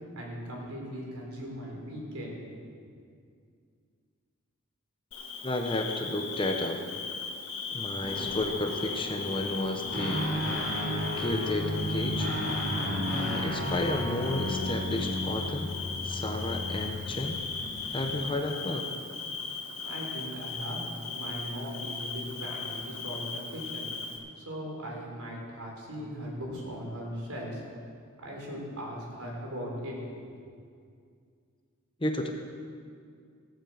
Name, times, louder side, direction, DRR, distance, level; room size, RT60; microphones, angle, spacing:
voice 1, 0.1-2.4 19.8-23.9 24.4-27.6 28.2-30.0 30.3-30.4, equal, 85° right, -2 dB, 3.7 m, -39 dB
Bird / Cricket, 5.1-24.2, left 4 dB, 75° left, 1.7 m, -37 dB
voice 2, 5.4-6.8 7.7-10.3 11.2-12.3 13.2-15.7 16.0-17.4 17.9-18.9 32.0-32.3, left 1 dB, 25° left, 4 dB, 0.9 m, -32 dB
sound 1, 8.0-18.3, left 1 dB, 50° left, 1.6 m, -42 dB
Guitar, 9.9-17.6, equal, 35° right, 4.1 m, -33 dB
16.0 x 7.5 x 7.6 m, 2.2 s
head